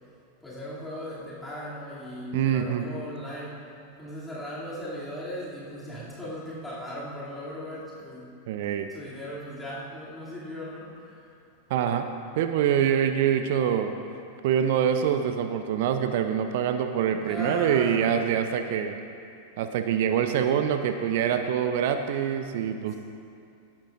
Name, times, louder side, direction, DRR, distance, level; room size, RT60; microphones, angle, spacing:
voice 1, 0.4-3.7 4.0-8.3 8.9-11.3 17.2-18.2, equal, 5° left, -9 dB, 2.6 m, -37 dB
voice 2, 2.3-2.9 8.5-8.9 11.7-12.1 12.4-13.9 14.4-19.0 19.6-23.0, right 9 dB, 50° right, 8 dB, 0.6 m, -25 dB
18.0 x 11.5 x 2.5 m, 2.5 s
figure-of-eight pair, 90°, 0 cm